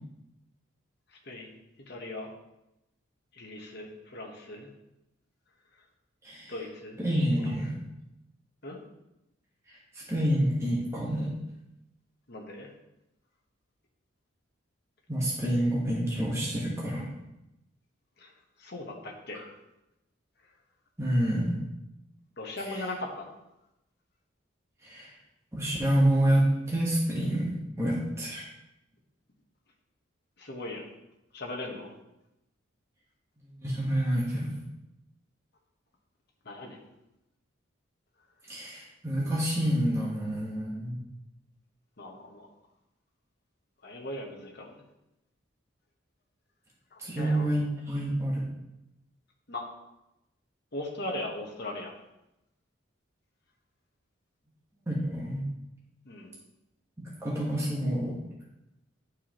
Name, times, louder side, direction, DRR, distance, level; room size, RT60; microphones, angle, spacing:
voice 1, 1.1-1.5 1.9-2.3 3.3-4.7 6.5-7.0 8.6-8.8 12.3-12.7 18.2-18.3 18.6-19.4 22.4-23.3 30.4-30.9 31.3-31.9 36.4-36.8 42.0-42.5 43.8-44.8 46.9-47.5 49.5-49.6 50.7-51.9 56.0-56.4, left 1 dB, 50° left, 0 dB, 1.2 m, -39 dB
voice 2, 7.0-7.7 9.7-11.3 15.1-17.1 21.0-21.6 24.8-25.1 25.5-28.5 33.6-34.5 38.5-41.0 47.0-48.5 54.9-55.4 57.0-58.2, right 1 dB, 15° right, -5 dB, 1.3 m, -28 dB
11.0 x 4.7 x 3.0 m, 0.91 s
head